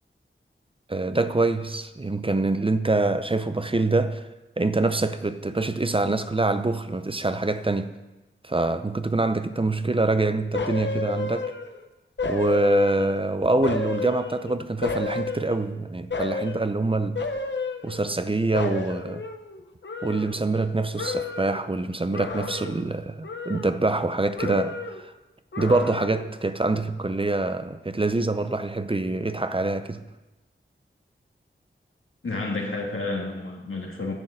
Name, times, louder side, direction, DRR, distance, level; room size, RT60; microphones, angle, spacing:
voice 1, 0.9-4.3 4.6-8.0 8.4-11.5 12.2-17.3 17.8-19.2 20.0-25.1 25.6-30.0, right 2 dB, 25° right, 0.6 m, -25 dB
sound 1, 10.5-11.8 12.2-13.3 13.6-15.7 16.1-16.7 17.1-18.3 18.5-20.7 21.0-21.7 22.1-22.9 23.2-24.1 24.4-25.1 25.5-26.3 26.7-26.8, left 4 dB, 65° left, 1.0 m, -32 dB
voice 2, 32.2-34.1, left 3 dB, 80° left, 2.3 m, -30 dB
10.5 x 6.4 x 7.7 m
wide cardioid pair, 75°, 21 cm